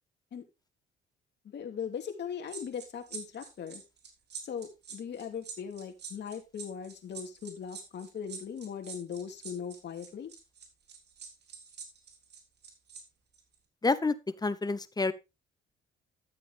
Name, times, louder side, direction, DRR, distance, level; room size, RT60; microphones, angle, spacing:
voice 1, 1.4-3.8 4.4-10.3, left 7 dB, 60° left, 4 dB, 2.7 m, -39 dB
sound 1, 2.5-13.0 13.3-13.5, right 6 dB, 60° right, 3.4 m, -46 dB
voice 2, 13.8-14.1 14.4-15.1, left 3 dB, 20° left, 15 dB, 1.0 m, -28 dB
12.5 x 7.7 x 3.6 m, 0.25 s
cardioid pair, 90°, 20 cm